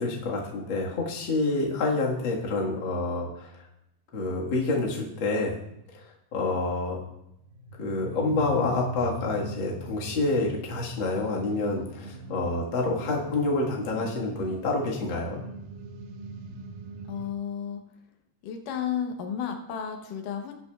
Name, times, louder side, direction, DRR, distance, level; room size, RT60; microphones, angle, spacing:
voice 1, 0.0-3.5 4.1-5.6 5.9-6.1 6.3-7.0 7.8-15.4, left 2 dB, 45° left, -2 dB, 1.9 m, -28 dB
sound 1, 7.4-17.3, equal, 80° right, 2.1 m, -40 dB
voice 2, 17.1-17.8 18.4-20.5, left 8 dB, 85° left, 4 dB, 2.5 m, -32 dB
18.5 x 8.3 x 2.3 m, 0.82 s
omnidirectional pair, 3.7 m